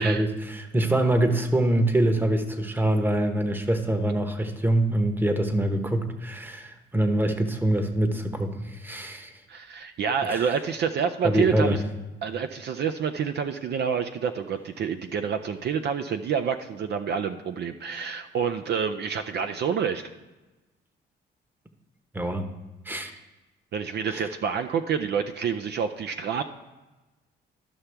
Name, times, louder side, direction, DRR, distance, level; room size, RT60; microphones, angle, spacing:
voice 1, 0.0-9.4 10.3-10.5 11.2-11.8 22.1-22.5 22.8-23.1 24.1-24.3, right 1 dB, 10° right, 7 dB, 0.9 m, -25 dB
voice 2, 9.5-11.8 12.2-20.0 23.7-26.4, right 7 dB, 60° right, 8 dB, 0.5 m, -28 dB
12.5 x 5.8 x 3.4 m, 1.1 s
cardioid pair, 90°, 20 cm